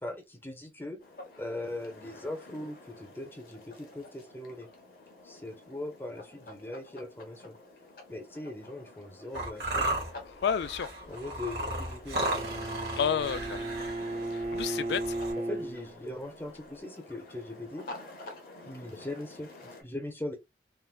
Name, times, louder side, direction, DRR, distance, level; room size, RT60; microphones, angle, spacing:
voice 1, 0.0-1.0 1.4-4.7 5.2-7.6 8.1-10.0 11.1-12.3 15.5-17.9 18.6-20.4, left 1 dB, 10° left, 0.6 m, -40 dB
sound 1, 1.0-19.8, left 2 dB, 50° left, 0.8 m, -49 dB
sound 2, 9.3-15.3, right 1 dB, 60° right, 1.3 m, -34 dB
voice 2, 10.3-10.9 12.9-13.7 14.3-15.2, left 7 dB, 75° left, 0.3 m, -30 dB
Bowed string instrument, 12.1-16.2, right 2 dB, 45° right, 0.8 m, -36 dB
3.4 x 2.1 x 2.3 m
head